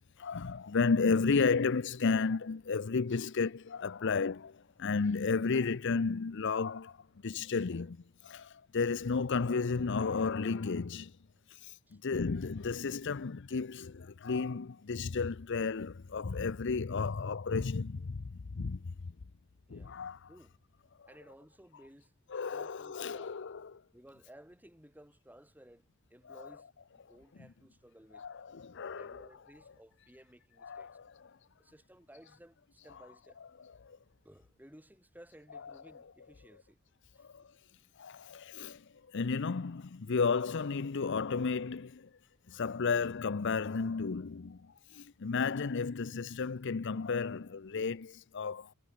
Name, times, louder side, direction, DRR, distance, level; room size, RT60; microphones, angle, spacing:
voice 1, 0.2-8.0 8.2-11.1 11.5-18.9 19.7-20.3 21.0-21.1 22.3-23.8 26.3-26.5 28.1-29.3 30.6-31.3 33.8-34.0 37.2-37.5 38.0-42.1 42.5-48.7, left 4 dB, 55° left, 0.6 m, -33 dB
voice 2, 19.7-20.0 20.3-20.6 21.1-22.1 22.5-23.3 23.9-28.2 28.9-31.0 31.6-33.4 34.2-36.8 37.1-37.5, right 1 dB, 10° right, 3.4 m, -57 dB
head